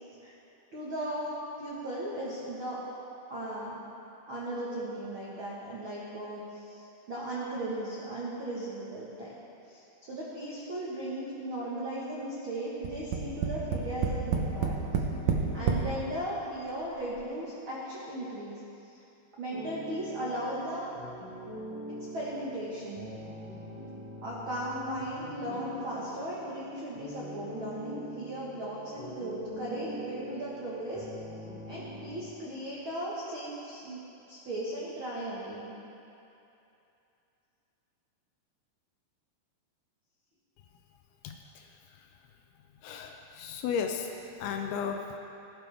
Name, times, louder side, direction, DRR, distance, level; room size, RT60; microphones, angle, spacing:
voice 1, 0.7-1.3 1.6-2.8 3.3-3.8 4.3-9.3 9.7-14.7 15.2-18.6 18.9-19.0 19.4-20.9 22.1-23.1 24.2-31.0 31.7-34.0 34.3-35.7, right 1 dB, 65° right, -7 dB, 1.2 m, -37 dB
Tap, 12.8-15.9 16.7-16.8 17.1-17.2, right 6 dB, 85° right, 1.6 m, -28 dB
sound 1, 19.5-32.2, equal, 30° left, 2.7 m, -43 dB
voice 2, 41.2-41.7 42.8-44.1 44.4-45.0, left 7 dB, 80° left, 4 dB, 2.4 m, -34 dB
17.0 x 11.0 x 3.5 m, 2.8 s
omnidirectional pair, 4.8 m